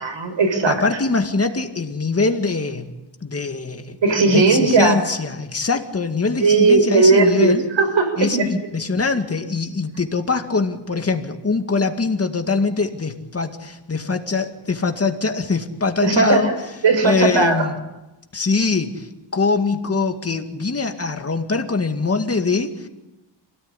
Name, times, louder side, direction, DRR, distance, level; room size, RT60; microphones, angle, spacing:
voice 1, 0.0-0.8 4.0-5.0 6.4-8.5 16.0-16.5 16.8-17.6, right 3 dB, 80° right, 6 dB, 5.2 m, -17 dB
voice 2, 0.6-2.9 3.2-4.0 4.3-7.7 8.2-16.6 17.0-17.7 18.3-22.9, left 4 dB, 35° left, 5 dB, 2.1 m, -23 dB
28.0 x 17.5 x 10.0 m, 1.0 s
wide cardioid pair, 150°, 44 cm